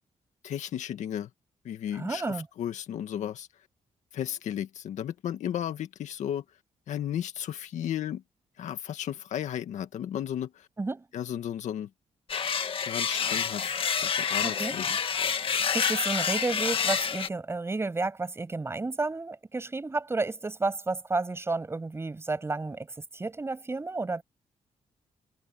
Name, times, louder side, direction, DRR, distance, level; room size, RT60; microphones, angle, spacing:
voice 1, 0.4-1.3 1.6-3.5 4.1-6.4 6.9-8.2 8.6-10.7 11.1-11.9 12.8-15.0, left 10 dB, 80° left, 1.9 m, -34 dB
voice 2, 1.9-2.5 10.8-11.1 14.4-14.8 15.7-24.2, right 3 dB, 20° right, 7.6 m, -31 dB
sound 1, 12.3-17.3, left 7 dB, 45° left, 1.6 m, -28 dB
cardioid pair, 125°, 12 cm